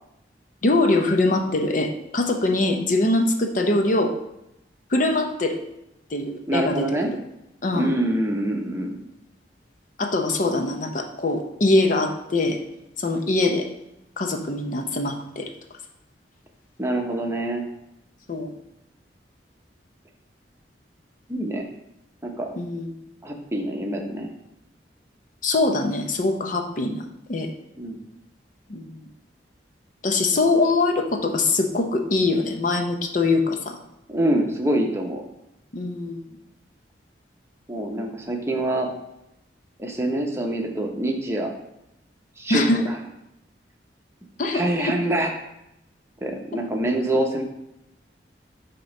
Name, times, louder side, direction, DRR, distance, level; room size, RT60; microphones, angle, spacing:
voice 1, 0.6-4.1 4.9-5.6 6.1-6.9 7.6-7.9 10.0-12.6 13.0-13.7 14.2-15.5 18.3-18.5 22.6-22.9 25.4-27.0 27.3-27.5 28.7-29.1 30.0-33.8 35.7-36.2 42.5-42.8 44.4-44.9 46.5-46.6, left 2 dB, 45° left, 4 dB, 0.6 m, -23 dB
voice 2, 6.5-7.1 7.7-8.9 16.8-17.7 21.3-21.7 22.2-22.5 23.2-24.3 27.8-28.1 34.1-35.2 37.7-38.9 39.8-41.6 42.4-43.0 44.5-45.3 46.2-47.4, right 1 dB, 15° right, 1 dB, 0.8 m, -25 dB
8.4 x 2.9 x 5.3 m, 0.86 s
head